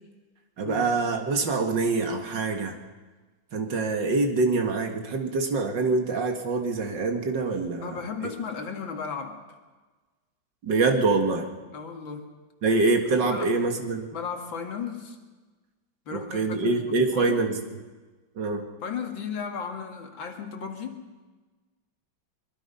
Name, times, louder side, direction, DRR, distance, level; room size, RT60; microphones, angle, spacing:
voice 1, 0.6-2.8 3.5-8.0 10.6-11.5 12.6-14.1 16.1-17.6 18.4-18.7, right 3 dB, 65° right, 4 dB, 2.5 m, -25 dB
voice 2, 7.8-9.4 11.7-12.3 13.2-13.5 14.1-15.2 16.1-17.4 18.8-21.0, left 6 dB, 80° left, 4 dB, 2.7 m, -35 dB
23.5 x 22.5 x 5.6 m, 1.3 s
omnidirectional pair, 2.1 m